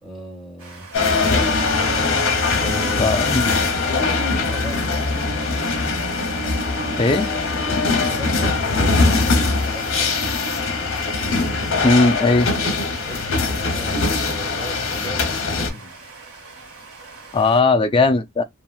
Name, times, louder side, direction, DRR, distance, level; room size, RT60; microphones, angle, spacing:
voice 1, 0.0-0.9 2.6-3.2 3.9-5.2 7.7-10.2 13.0-16.0, left 1 dB, ahead, 1.4 m, -35 dB
sound 1, 0.6-17.6, right 4 dB, 90° right, 1.6 m, -42 dB
sound 2, 0.9-15.7, left 3 dB, 60° left, 0.9 m, -21 dB
voice 2, 3.0-3.5 7.0-7.3 11.8-12.5 17.3-18.4, left 3 dB, 25° left, 0.4 m, -17 dB
2.9 x 2.7 x 2.3 m
head